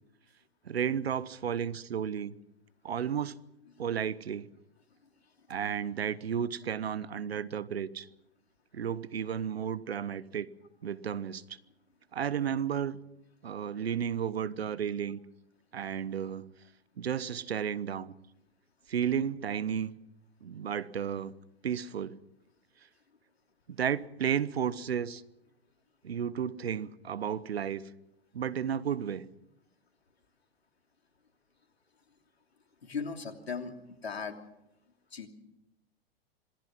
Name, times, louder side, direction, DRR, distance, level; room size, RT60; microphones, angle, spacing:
voice 1, 0.6-2.3 2.8-3.3 3.8-4.5 5.5-8.1 8.7-10.5 10.8-11.6 12.1-13.0 13.4-15.2 15.7-16.5 17.0-18.1 18.9-19.9 20.4-21.3 21.6-22.2 23.7-25.2 26.0-27.8 28.3-29.2, right 8 dB, 80° right, 1.1 m, -33 dB
voice 2, 32.8-34.4 35.1-35.3, left 5 dB, 85° left, 3.0 m, -38 dB
26.5 x 19.0 x 6.0 m
hypercardioid pair, 105°, 30 cm